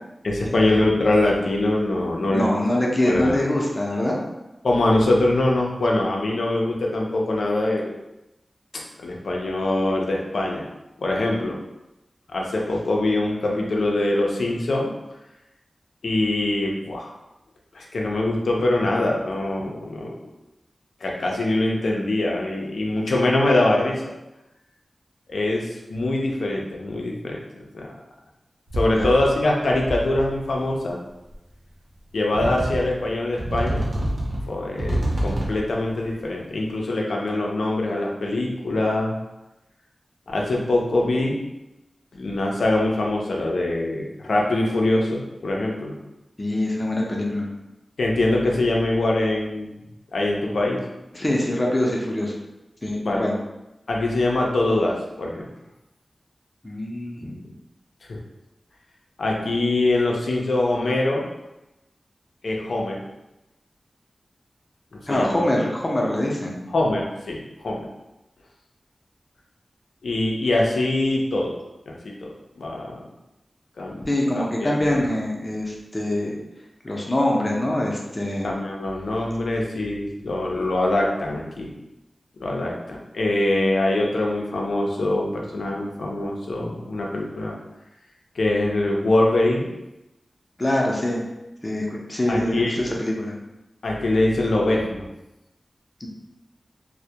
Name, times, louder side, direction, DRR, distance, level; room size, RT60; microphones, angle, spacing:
voice 1, 0.2-2.5 3.0-3.4 4.6-8.0 9.0-10.7 11.0-11.6 12.3-14.9 16.0-17.1 17.7-20.1 21.0-24.0 25.3-27.4 27.7-27.9 28.7-31.0 32.1-33.9 34.5-39.2 40.3-41.4 42.1-45.9 48.0-49.7 50.1-50.8 53.0-53.3 53.9-55.5 58.1-58.2 59.2-61.3 62.4-63.0 64.9-65.5 66.7-67.4 67.6-67.8 70.0-71.6 71.9-73.0 73.8-74.0 74.4-75.0 78.4-81.7 82.4-87.6 88.4-89.7 92.3-92.8 93.8-95.1, left 2 dB, 90° left, -1 dB, 0.4 m, -23 dB
voice 2, 2.3-4.2 28.9-29.1 46.4-47.5 51.1-52.3 52.8-53.3 56.6-57.4 65.1-66.6 74.1-76.3 76.8-78.5 90.6-91.2 91.6-93.3 96.0-96.1, left 1 dB, 25° left, -2 dB, 0.5 m, -24 dB
sound 1, 28.7-29.4 29.7-30.5 31.3-31.4 32.3-33.0 33.4-35.7, right 1 dB, 75° right, 0.6 m, -27 dB
2.2 x 2.1 x 2.7 m, 0.95 s
wide cardioid pair, 80°, 0 cm